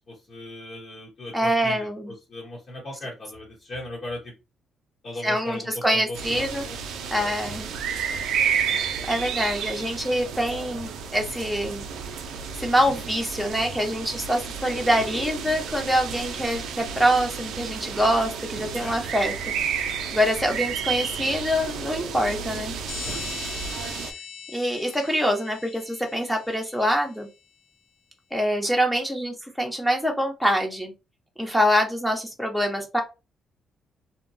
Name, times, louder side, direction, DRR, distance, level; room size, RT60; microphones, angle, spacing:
voice 1, 0.1-4.3 5.0-7.3 8.1-8.6 18.7-19.0 23.0-23.9, left 1 dB, 50° left, -4 dB, 1.0 m, -38 dB
voice 2, 1.3-2.1 5.2-6.7 7.1-7.7 9.1-11.9 12.5-19.3 19.7-22.7 24.5-27.3 28.3-30.9 31.4-33.0, equal, ahead, 2 dB, 0.9 m, -25 dB
sound 1, 6.1-24.1, right 7 dB, 85° right, 0.5 m, -31 dB
sound 2, 22.9-27.2, left 7 dB, 75° left, 0.5 m, -40 dB
2.8 x 2.2 x 2.6 m, 0.27 s
cardioid pair, 90°, 0 cm